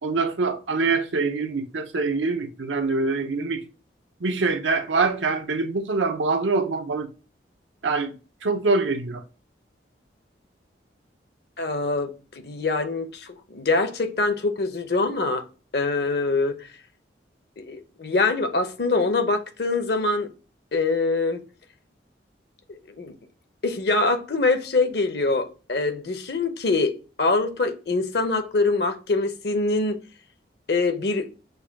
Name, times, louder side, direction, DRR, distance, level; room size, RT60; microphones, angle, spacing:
voice 1, 0.0-3.6 4.2-7.1 7.8-8.2 8.4-9.2, right 3 dB, 85° right, 0.7 m, -24 dB
voice 2, 11.6-15.4 15.7-16.7 17.6-20.3 20.7-21.4 22.7-23.1 23.6-30.0 30.7-31.3, left 3 dB, 55° left, 0.8 m, -24 dB
6.7 x 2.3 x 3.4 m
head